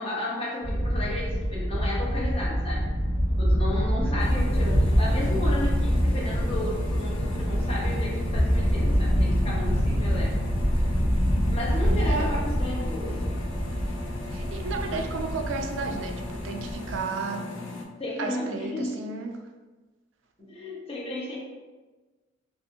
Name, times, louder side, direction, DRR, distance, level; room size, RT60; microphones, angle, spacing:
voice 1, 0.0-2.8 3.4-10.3 11.5-13.4 18.0-19.0 20.4-21.4, left 1 dB, 30° left, -5 dB, 0.7 m, -33 dB
sound 1, 0.6-17.0, equal, 55° left, 1.1 m, -25 dB
voice 2, 3.7-4.2 11.8-12.3 14.3-17.5 18.2-19.5, right 4 dB, 70° right, 5 dB, 0.4 m, -34 dB
sound 2, 4.2-17.8, left 3 dB, 80° left, 0.5 m, -38 dB
2.7 x 2.5 x 2.5 m, 1.3 s
head